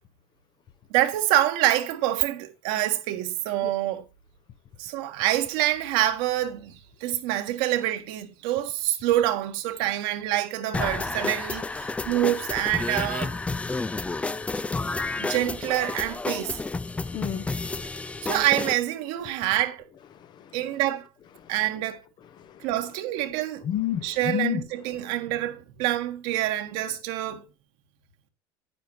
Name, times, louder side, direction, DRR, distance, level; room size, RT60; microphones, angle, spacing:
voice 1, 0.9-4.0 4.8-13.4 15.2-16.6 18.2-19.8 20.5-21.1 21.5-22.0 22.6-23.6 24.0-27.4, right 14 dB, 70° right, 1.6 m, -26 dB
sound 1, 10.7-18.7, left 3 dB, 10° left, 0.4 m, -30 dB
voice 2, 17.0-18.6 19.2-19.4 20.0-20.8 21.2-21.8 22.2-23.3 23.6-25.2, left 11 dB, 45° left, 1.0 m, -34 dB
9.5 x 9.4 x 3.2 m
supercardioid pair, 100°, 11 cm